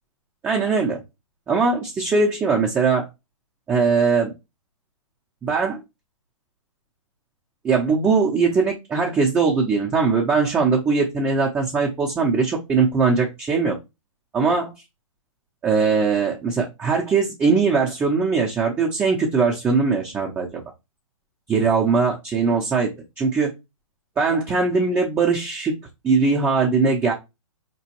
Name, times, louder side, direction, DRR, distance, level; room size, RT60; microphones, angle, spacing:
voice 1, 0.4-1.0 1.5-3.1 3.7-4.3 5.4-5.8 7.6-13.8 14.3-14.7 15.6-20.6 21.5-23.5 24.2-25.8 26.0-27.1, right 4 dB, 10° right, -2 dB, 0.7 m, -20 dB
4.3 x 3.0 x 2.9 m, 0.23 s
hypercardioid pair, 140°, 17 cm